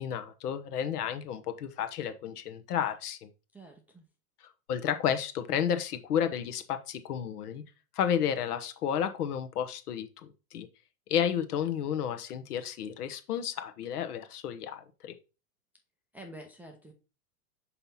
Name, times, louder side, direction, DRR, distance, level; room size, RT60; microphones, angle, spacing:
voice 1, 0.0-3.3 4.4-7.6 7.9-10.7 11.1-15.1, left 9 dB, 75° left, 9 dB, 1.0 m, -32 dB
voice 2, 3.5-4.1 16.1-16.9, right 1 dB, 5° right, 1 dB, 0.4 m, -48 dB
5.5 x 4.2 x 4.1 m, 0.32 s
hypercardioid pair, 115°, 46 cm